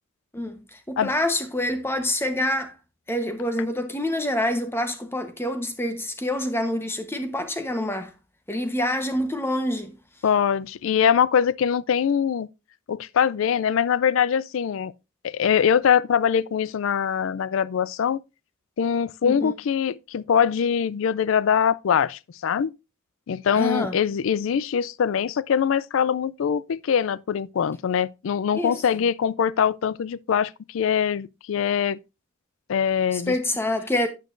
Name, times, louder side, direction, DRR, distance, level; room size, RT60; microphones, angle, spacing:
voice 1, 0.9-2.7 3.1-8.1 8.5-9.9 19.2-19.5 23.6-24.0 28.5-28.8 33.1-34.1, left 1 dB, 10° left, 1.0 m, -26 dB
voice 2, 10.2-12.5 12.9-14.9 15.2-18.2 18.8-22.7 23.3-32.0 32.7-33.4, left 7 dB, 65° left, 0.3 m, -23 dB
9.1 x 9.1 x 2.5 m
head